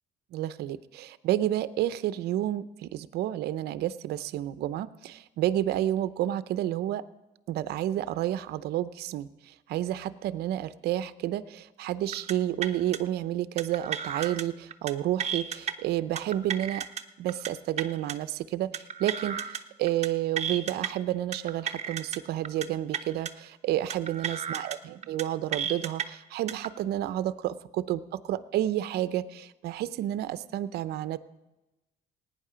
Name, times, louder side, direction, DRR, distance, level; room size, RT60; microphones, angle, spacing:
voice 1, 0.3-7.0 7.5-16.9 17.2-31.2, right 13 dB, 75° right, 15 dB, 0.6 m, -30 dB
sound 1, 12.1-12.3 12.6-13.0 13.6-14.4 14.7-14.9 15.2-15.7 16.2-17.0 17.3-17.5 17.8-18.1 18.7-19.6 19.9-20.1 20.4-20.9 21.3-22.2 22.4-22.7 22.9-23.3 23.9-24.8 25.0-25.2 25.5-26.0 26.5-26.7, right 7 dB, 40° right, 0.8 m, -33 dB
18.0 x 9.6 x 5.0 m, 1.0 s
cardioid pair, 110°, 17 cm